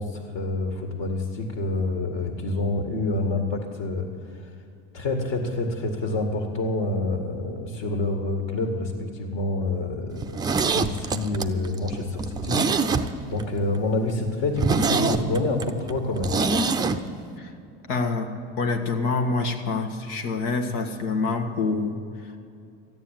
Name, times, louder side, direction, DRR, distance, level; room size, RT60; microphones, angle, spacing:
voice 1, 0.0-4.1 4.3-4.5 4.9-16.3, left 2 dB, 50° left, 3 dB, 1.9 m, -28 dB
Zipper (clothing), 10.2-13.4 13.8-13.9 14.2-14.3 14.6-17.0 17.2-17.3, right 4 dB, 15° right, 0.5 m, -24 dB
voice 2, 17.9-18.3 18.6-22.0, left 3 dB, 80° left, 6 dB, 1.7 m, -26 dB
14.0 x 9.6 x 9.1 m, 2.5 s
cardioid pair, 155°, 29 cm